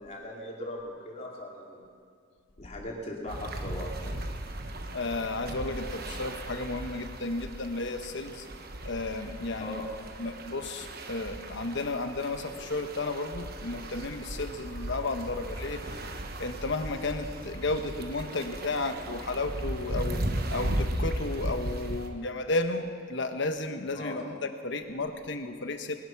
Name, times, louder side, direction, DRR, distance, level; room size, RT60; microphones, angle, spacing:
voice 1, 0.0-1.8 2.6-4.3 9.6-9.9 23.9-24.2, left 1 dB, 35° left, -2 dB, 2.9 m, -39 dB
sound 1, 3.3-22.1, right 1 dB, 50° right, 1.2 m, -37 dB
voice 2, 4.9-8.5 8.8-9.8 10.2-15.8 16.4-20.2 20.5-26.0, left 2 dB, 65° left, 7 dB, 1.1 m, -33 dB
21.0 x 11.0 x 6.0 m, 2.3 s
head